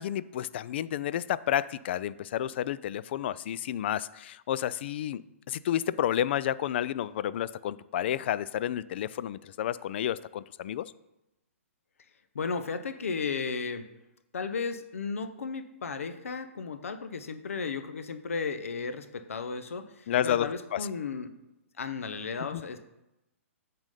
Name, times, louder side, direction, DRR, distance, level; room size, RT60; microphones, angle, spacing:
voice 1, 0.0-5.2 5.5-10.8 20.1-20.5 20.7-20.8 22.5-22.6, left 11 dB, 50° left, 18 dB, 0.3 m, -30 dB
voice 2, 12.3-13.9 14.3-21.3 21.8-22.8, left 5 dB, 70° left, 9 dB, 0.7 m, -34 dB
8.8 x 3.8 x 5.5 m, 0.92 s
figure-of-eight pair, 120°, 8 cm